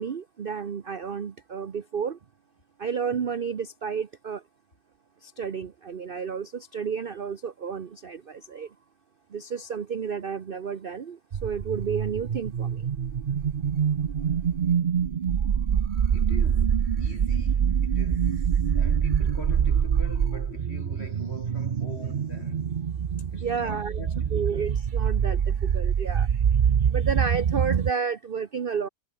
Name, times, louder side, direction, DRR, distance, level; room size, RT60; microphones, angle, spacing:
voice 1, 0.0-2.2 2.8-4.4 5.2-8.7 9.3-12.9 23.4-24.0 24.3-26.3 26.9-28.9, right 6 dB, 40° right, 0.8 m, -31 dB
sound 1, 11.3-27.9, right 8 dB, 85° right, 0.4 m, -25 dB
voice 2, 16.1-18.5 18.7-22.9 23.3-24.7, left 2 dB, 35° left, 4.9 m, -43 dB
omnidirectional pair, 1.9 m